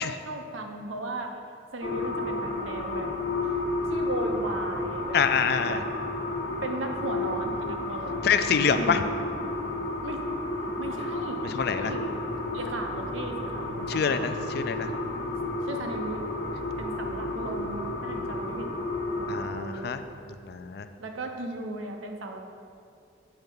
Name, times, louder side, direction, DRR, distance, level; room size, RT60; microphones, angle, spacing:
voice 1, 0.0-1.4 1.7-3.1 3.9-5.2 5.6-5.8 6.6-8.3 8.7-9.0 10.0-10.3 10.8-12.1 12.5-14.2 15.7-16.2 16.8-18.7 19.2-19.9 21.0-22.4, right 2 dB, 85° right, 3 dB, 0.8 m, -36 dB
sound 1, 1.8-19.5, left 2 dB, 70° left, 1.1 m, -32 dB
voice 2, 5.1-5.8 8.2-9.0 11.4-11.9 13.9-14.9 19.3-20.0 20.4-20.9, left 6 dB, 55° left, 10 dB, 0.3 m, -26 dB
7.9 x 4.5 x 5.4 m, 2.5 s
head